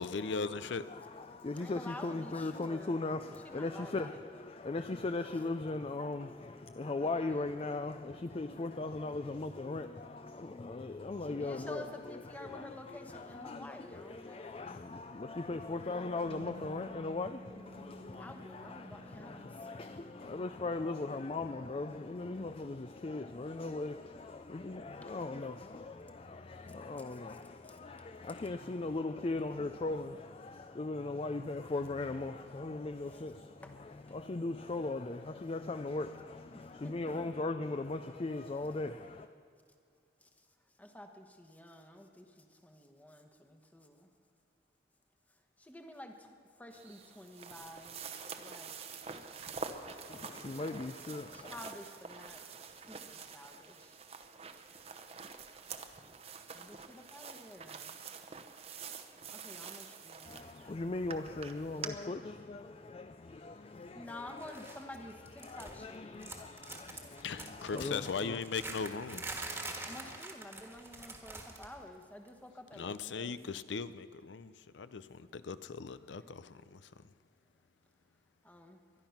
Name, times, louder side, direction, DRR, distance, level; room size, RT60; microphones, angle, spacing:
voice 1, 0.0-0.8 67.2-69.3 72.8-77.0, left 5 dB, 90° left, 0.5 m, -39 dB
voice 2, 0.9-11.8 12.5-13.6 13.9-33.6 34.1-39.3 50.1-51.5 60.3-64.1 65.4-68.4 69.4-69.9, left 2 dB, 30° left, 0.4 m, -39 dB
voice 3, 1.5-4.4 7.0-7.6 11.2-14.8 18.1-20.0 25.0-25.2 27.0-27.8 33.0-33.3 33.6-33.7 34.1-34.2 36.5-37.5 40.2-40.5 40.8-44.1 45.3-48.8 51.3-54.0 56.5-58.0 59.3-61.1 63.8-66.3 69.8-73.4 78.4-78.8, left 1 dB, 10° left, 1.1 m, -51 dB
Bass guitar, 16.3-22.5, equal, 55° right, 1.5 m, -55 dB
sound 1, 46.7-61.9, right 5 dB, 35° right, 0.8 m, -47 dB
sound 2, 64.4-64.8 65.1-65.9 66.2-71.8 72.0-72.3 73.4-73.5, right 2 dB, 15° right, 1.5 m, -45 dB
23.0 x 11.0 x 5.8 m
head